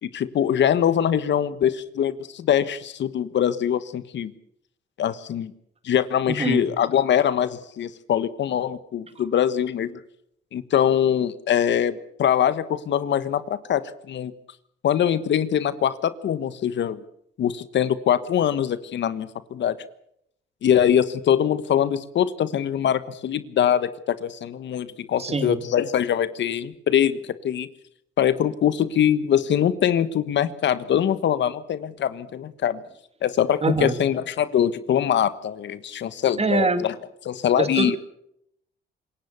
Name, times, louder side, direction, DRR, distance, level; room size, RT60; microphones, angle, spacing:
voice 1, 0.0-4.3 5.0-5.5 5.8-9.9 10.5-14.3 14.8-17.0 17.4-19.8 20.6-27.7 28.2-32.8 33.2-36.9 37.2-38.0, left 9 dB, 65° left, 14 dB, 1.4 m, -23 dB
voice 2, 6.3-6.6 25.2-25.6 33.6-34.0 36.4-36.8 37.6-38.0, right 3 dB, 30° right, 10 dB, 2.8 m, -24 dB
27.0 x 16.0 x 7.0 m, 0.73 s
cardioid pair, 90°, 20 cm